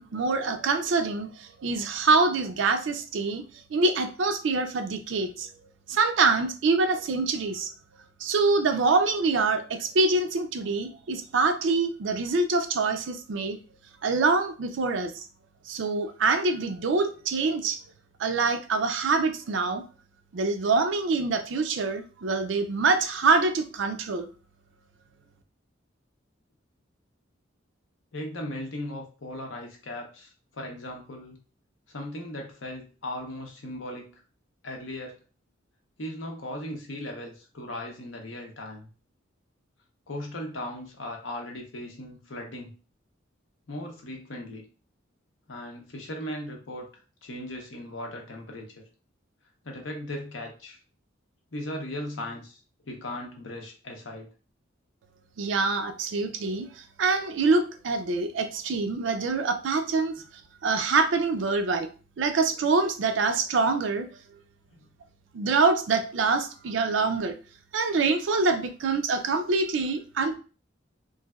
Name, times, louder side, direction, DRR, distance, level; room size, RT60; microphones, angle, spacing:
voice 1, 0.0-3.4 3.7-5.5 5.9-7.7 8.2-13.6 14.0-15.3 15.7-17.8 18.2-19.8 20.3-24.3 55.4-56.7 57.0-60.1 60.6-61.9 62.2-64.1 65.3-67.3 67.7-70.4, right 3 dB, 65° right, 8 dB, 0.4 m, -25 dB
voice 2, 28.1-31.4 31.9-34.2 34.6-35.2 36.0-38.9 40.1-42.7 43.7-44.6 45.5-46.9 47.2-48.8 49.6-50.8 51.5-52.6 52.9-54.3 60.2-60.3 64.7-64.8, left 1 dB, 70° left, 1 dB, 0.8 m, -37 dB
3.2 x 2.6 x 2.3 m, 0.36 s
head